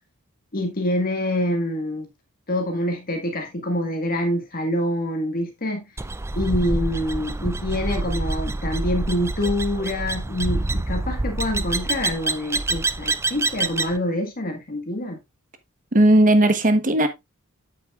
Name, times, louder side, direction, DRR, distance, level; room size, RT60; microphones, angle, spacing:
voice 1, 0.5-2.1 2.5-5.8 6.3-15.2, left 1 dB, 40° left, 1.6 m, -26 dB
sound 1, 6.0-14.0, right 2 dB, 10° right, 0.4 m, -26 dB
voice 2, 15.9-17.1, right 1 dB, 40° right, 1.2 m, -16 dB
8.3 x 8.1 x 2.4 m
head